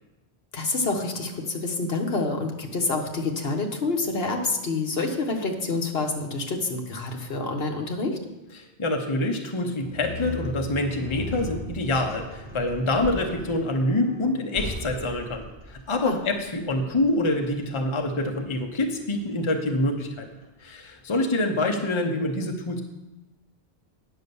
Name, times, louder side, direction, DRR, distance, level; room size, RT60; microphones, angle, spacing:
voice 1, 0.5-8.2 16.0-16.2, left 3 dB, 65° left, 3 dB, 1.3 m, -27 dB
voice 2, 8.5-20.3 20.6-22.8, left 1 dB, 30° left, 3 dB, 0.8 m, -26 dB
sound 1, 9.8-21.0, left 2 dB, 30° right, 2.7 m, -39 dB
9.6 x 5.4 x 6.9 m, 1.0 s
omnidirectional pair, 1.1 m